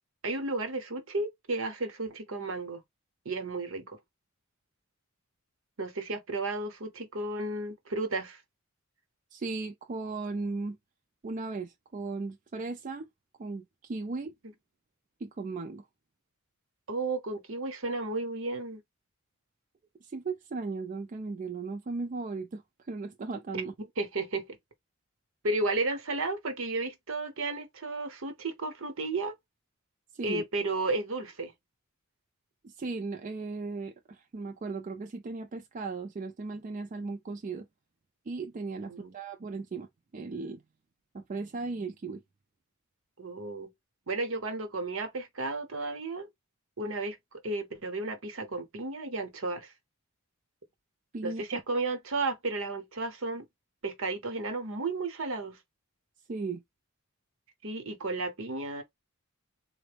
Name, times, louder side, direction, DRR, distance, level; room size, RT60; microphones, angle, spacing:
voice 1, 0.2-2.8 3.2-4.0 5.8-8.4 16.9-18.8 23.5-24.5 25.4-29.3 30.2-31.5 38.8-39.2 43.2-43.7 44.1-46.3 46.8-49.7 51.2-53.5 53.8-55.6 57.6-58.8, right 2 dB, 65° right, 0.8 m, -33 dB
voice 2, 9.3-10.8 11.2-13.1 13.4-14.3 15.2-15.9 20.0-22.6 22.9-23.7 30.1-30.4 32.6-37.7 38.3-39.9 40.1-40.6 41.1-42.2 51.1-51.6 56.3-56.6, right 3 dB, 35° right, 0.3 m, -36 dB
3.6 x 2.1 x 3.3 m
head